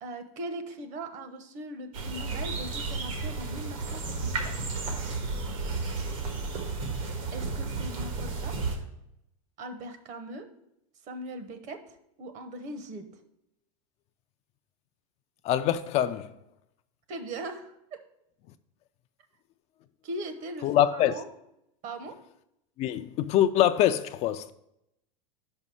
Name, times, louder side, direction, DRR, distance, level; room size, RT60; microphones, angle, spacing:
voice 1, 0.0-4.5 7.3-8.8 9.6-10.5 11.1-13.1 17.1-17.7 20.0-21.3 21.8-22.2, right 1 dB, 40° right, 1.0 m, -40 dB
sound 1, 1.9-8.8, right 3 dB, 70° right, 1.7 m, -32 dB
voice 2, 15.4-16.3 20.6-21.2 22.8-24.5, left 11 dB, 40° left, 0.4 m, -24 dB
5.4 x 5.3 x 6.2 m
supercardioid pair, 120°, 18 cm